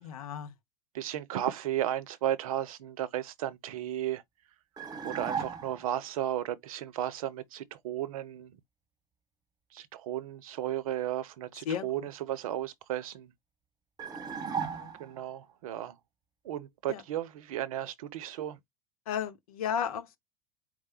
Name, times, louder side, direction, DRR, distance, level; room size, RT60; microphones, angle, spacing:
voice 1, 0.0-0.5 11.6-12.1 14.5-14.9 16.9-17.0 19.1-20.2, left 8 dB, 65° left, 0.8 m, -34 dB
voice 2, 0.9-4.2 5.0-8.5 9.7-13.3 15.0-16.0 16.4-18.6, right 12 dB, 65° right, 0.7 m, -34 dB
sound 1, 4.8-5.9 14.0-15.3, right 6 dB, 20° right, 1.1 m, -36 dB
4.7 x 2.1 x 4.3 m
figure-of-eight pair, 80°, 20 cm